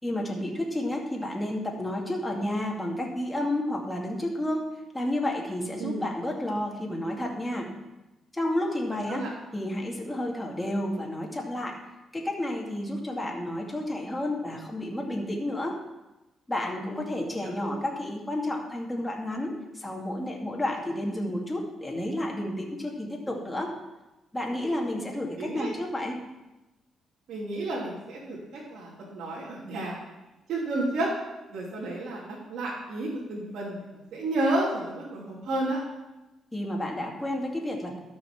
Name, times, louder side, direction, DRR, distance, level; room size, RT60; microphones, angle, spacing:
voice 1, 0.0-7.7 8.3-9.2 9.5-11.8 12.1-15.8 16.5-23.7 24.3-26.2 36.5-38.0, left 1 dB, 10° left, -1 dB, 2.3 m, -31 dB
voice 2, 17.4-17.7 25.4-25.7 27.3-30.0 30.5-31.1 31.5-33.8 34.1-35.8, right 2 dB, 70° right, -5 dB, 2.8 m, -31 dB
12.5 x 5.9 x 6.0 m, 1.0 s
cardioid pair, 90°, 0 cm